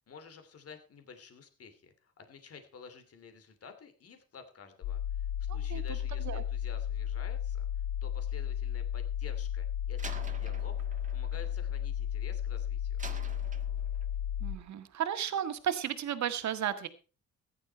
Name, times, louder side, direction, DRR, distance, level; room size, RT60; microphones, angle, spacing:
voice 1, 0.1-13.0, left 5 dB, 50° left, 8 dB, 2.8 m, -52 dB
sound 1, 4.8-14.6, left 10 dB, 85° left, 1.4 m, -34 dB
voice 2, 5.5-5.8 6.3-6.4 14.4-16.9, right 9 dB, 65° right, 9 dB, 1.7 m, -34 dB
Slam, 10.0-12.4 13.0-14.2, right 4 dB, 25° right, 1.9 m, -48 dB
15.0 x 10.5 x 4.6 m, 0.35 s
cardioid pair, 90°, 30 cm